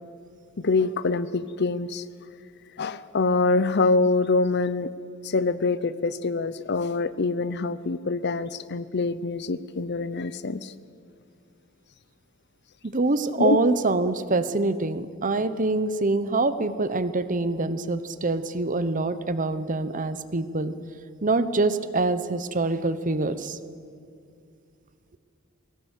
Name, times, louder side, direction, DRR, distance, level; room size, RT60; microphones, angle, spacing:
voice 1, 0.6-2.0 2.8-4.9 5.2-10.7 13.4-13.6, left 3 dB, 55° left, 16 dB, 0.8 m, -25 dB
voice 2, 12.9-20.7 21.2-23.6, right 2 dB, 40° right, 13 dB, 0.9 m, -25 dB
22.0 x 17.5 x 8.2 m, 2.3 s
head